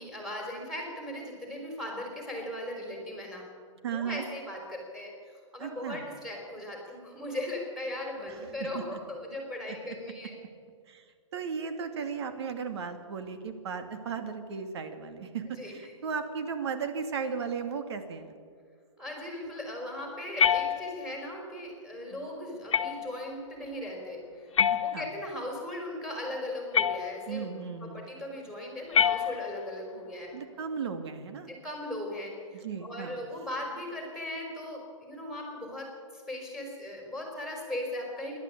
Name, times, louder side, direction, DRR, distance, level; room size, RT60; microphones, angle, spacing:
voice 1, 0.0-3.5 3.9-10.3 15.5-15.8 19.0-24.5 24.8-30.3 31.5-38.4, left 1 dB, 5° right, 0 dB, 3.9 m, -38 dB
voice 2, 3.8-4.2 5.6-6.0 8.3-9.0 9.8-9.9 10.9-11.0 11.3-18.4 22.1-22.3 24.9-25.1 27.3-28.1 30.3-31.5 32.6-33.1, right 6 dB, 55° right, 8 dB, 2.5 m, -36 dB
sound 1, 20.4-21.3 22.7-23.3 24.6-25.4 26.7-27.5 28.9-29.8, left 8 dB, 70° left, 1.5 m, -27 dB
27.0 x 12.0 x 8.6 m, 2.1 s
hypercardioid pair, 170°, 17 cm